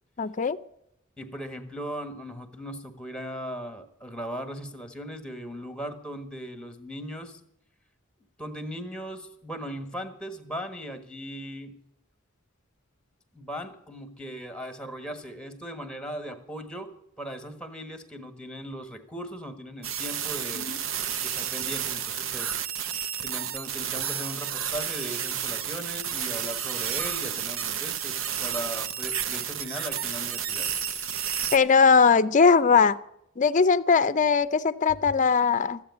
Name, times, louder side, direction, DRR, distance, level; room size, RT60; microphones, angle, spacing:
voice 1, 0.2-0.6 20.6-20.7 31.5-33.0 33.4-35.8, left 5 dB, 40° left, 14 dB, 0.5 m, -20 dB
voice 2, 1.2-7.4 8.4-11.8 13.3-16.9 17.2-20.7 21.2-22.6 23.2-30.7, equal, 5° left, 8 dB, 1.5 m, -38 dB
sound 1, 19.8-31.6, right 9 dB, 70° right, 0.7 m, -31 dB
14.0 x 8.0 x 9.6 m, 0.77 s
head